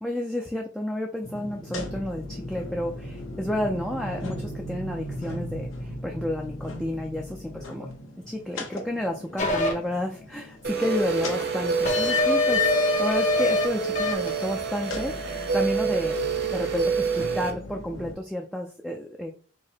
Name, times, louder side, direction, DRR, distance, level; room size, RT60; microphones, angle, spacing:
voice 1, 0.0-7.9 8.2-16.2 16.5-19.3, left 1 dB, ahead, 0 dB, 0.4 m, -31 dB
sound 1, 1.2-18.1, left 1 dB, 75° left, 1.1 m, -38 dB
sound 2, 9.4-9.7 11.9-13.6 14.0-14.3, left 3 dB, 35° left, 0.9 m, -23 dB
sound 3, 10.6-17.5, right 5 dB, 50° right, 0.8 m, -28 dB
4.7 x 2.1 x 4.4 m, 0.39 s
head